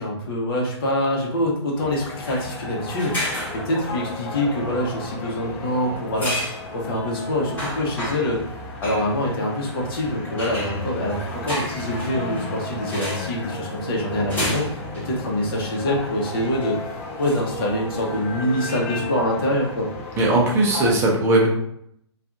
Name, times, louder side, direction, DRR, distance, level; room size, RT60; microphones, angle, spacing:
voice 1, 0.0-8.4 8.8-16.8 17.2-19.9, left 1 dB, 50° left, -1 dB, 0.9 m, -25 dB
sound 1, 1.8-20.9, left 2 dB, 30° left, 0.5 m, -34 dB
sound 2, 2.3-2.5 3.0-4.0 6.2-6.6 7.1-7.2 7.6-8.4 8.8-9.1 10.4-12.5 12.9-13.3 14.3-15.1 15.6-15.7 16.4-16.7 17.2-18.7, equal, 15° left, 1.1 m, -31 dB
voice 2, 20.2-21.5, right 2 dB, 15° right, -3 dB, 0.6 m, -18 dB
2.6 x 2.4 x 2.4 m, 0.71 s
hypercardioid pair, 135°, 15 cm